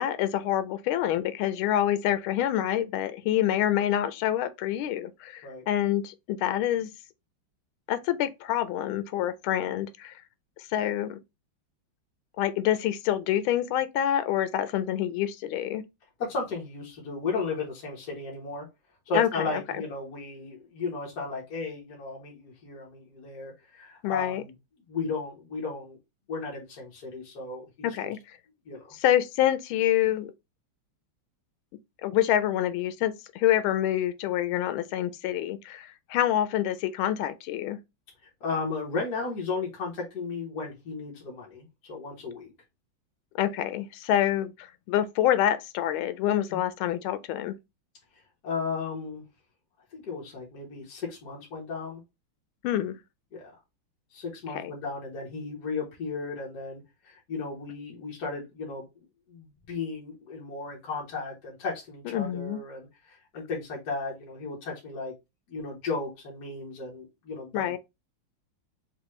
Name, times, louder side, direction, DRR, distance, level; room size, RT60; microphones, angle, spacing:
voice 1, 0.0-6.9 7.9-10.1 10.7-11.2 12.4-15.8 19.1-19.6 24.0-24.4 27.8-28.2 28.9-30.3 32.0-37.8 43.4-47.6 52.6-53.0 54.5-54.7 62.0-62.6 67.5-67.8, left 11 dB, 85° left, 1.4 m, -27 dB
voice 2, 16.2-18.7 19.1-24.5 24.9-26.0 26.3-28.1 28.7-28.9 38.4-42.5 46.5-46.7 48.4-49.2 49.9-52.0 53.3-53.5 54.1-65.1 65.5-67.8, left 4 dB, 55° left, 1.9 m, -35 dB
6.1 x 2.5 x 3.1 m
omnidirectional pair, 2.2 m